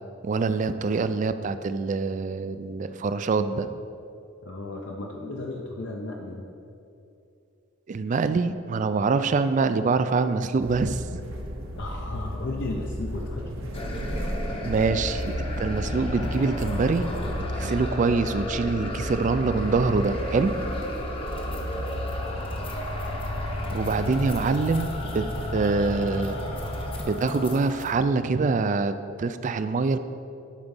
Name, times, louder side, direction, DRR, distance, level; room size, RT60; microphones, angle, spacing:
voice 1, 0.2-3.7 7.9-11.0 14.6-17.1 17.5-20.5 23.7-25.3 25.5-26.4 27.0-30.0, right 4 dB, 40° right, 11 dB, 0.3 m, -25 dB
voice 2, 4.4-6.5 11.8-13.5, left 2 dB, 60° left, 0 dB, 0.6 m, -34 dB
sound 1, 10.6-27.0, equal, 75° right, 1.0 m, -35 dB
sound 2, 13.7-28.0, left 1 dB, 25° left, 0.8 m, -33 dB
10.5 x 4.0 x 5.3 m, 2.7 s
head